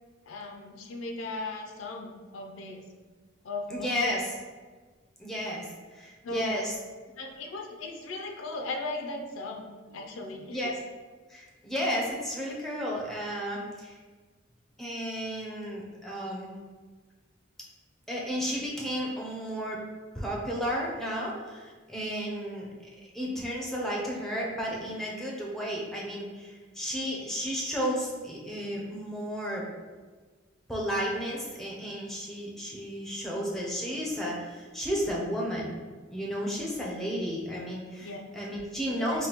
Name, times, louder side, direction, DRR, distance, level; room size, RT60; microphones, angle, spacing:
voice 1, 0.3-2.9 3.4-4.2 6.2-6.7 7.2-10.6 38.0-38.2 38.9-39.3, left 2 dB, 80° left, 3 dB, 0.5 m, -37 dB
voice 2, 3.7-4.2 5.2-6.7 10.5-10.8 11.3-14.0 14.8-16.5 18.1-19.8 20.1-22.7 23.1-29.6 30.7-35.7 36.1-39.3, equal, ahead, -3 dB, 0.5 m, -33 dB
5.3 x 2.2 x 2.9 m, 1.4 s
head